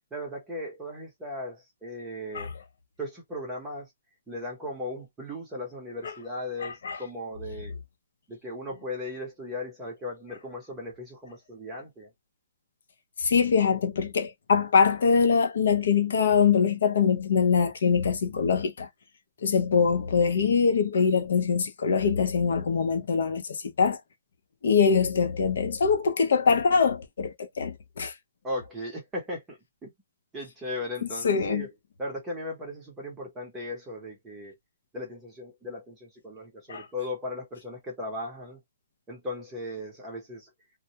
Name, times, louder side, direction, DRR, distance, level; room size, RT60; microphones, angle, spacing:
voice 1, 0.1-2.5 3.0-3.9 4.3-7.8 8.3-12.1 28.4-29.9 30.3-34.5 34.9-38.6 39.1-40.5, left 1 dB, 10° right, 0.7 m, -37 dB
voice 2, 13.2-18.9 19.4-23.4 23.8-24.0 24.6-28.1 31.2-31.6 36.7-36.8, left 6 dB, 60° left, 0.5 m, -23 dB
2.2 x 2.0 x 2.7 m
hypercardioid pair, 175°, 0 cm